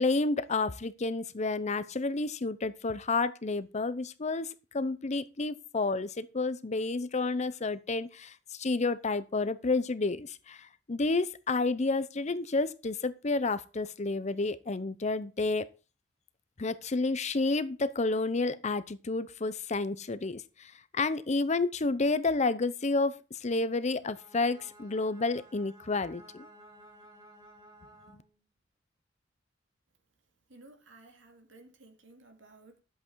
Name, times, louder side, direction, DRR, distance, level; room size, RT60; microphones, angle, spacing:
voice 1, 0.0-15.7 16.6-26.5, left 3 dB, 40° left, 0.7 m, -30 dB
Bowed string instrument, 24.0-28.4, equal, 20° right, 2.7 m, -55 dB
voice 2, 30.5-32.8, right 2 dB, 85° right, 2.6 m, -55 dB
11.0 x 8.0 x 4.6 m
head